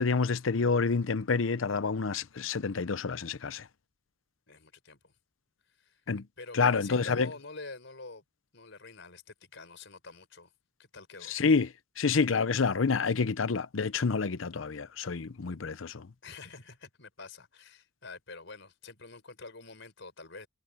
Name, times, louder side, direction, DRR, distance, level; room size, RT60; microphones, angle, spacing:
voice 1, 0.0-3.7 6.1-6.3 6.5-7.3 11.3-16.1, left 4 dB, 90° left, 0.7 m, -28 dB
voice 2, 4.5-5.1 5.8-6.0 6.4-8.2 8.5-10.5 10.8-11.4 16.2-20.5, left 3 dB, 70° left, 5.5 m, -47 dB
head